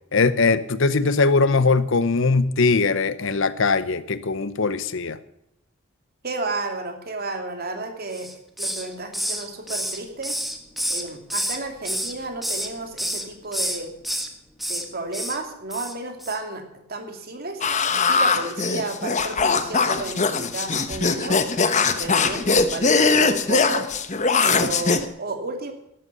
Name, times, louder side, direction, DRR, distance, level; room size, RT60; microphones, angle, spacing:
voice 1, 0.1-5.2, left 4 dB, 65° left, 14 dB, 0.8 m, -20 dB
voice 2, 6.2-8.3 8.6-10.4 10.9-13.9 14.7-16.6 16.9-17.6 18.0-21.4 21.8-23.8 24.4-25.7, right 2 dB, 45° right, 4 dB, 2.7 m, -32 dB
Hiss, 8.1-8.9 9.1-11.6 11.9-12.7 13.0-13.2 13.5-14.3 14.6-14.9 15.1-15.4 15.7-15.9 16.2-16.4, equal, ahead, 1.4 m, -28 dB
sound 1, 17.6-25.1, left 4 dB, 35° left, 1.0 m, -21 dB
12.5 x 11.5 x 6.8 m, 0.78 s
head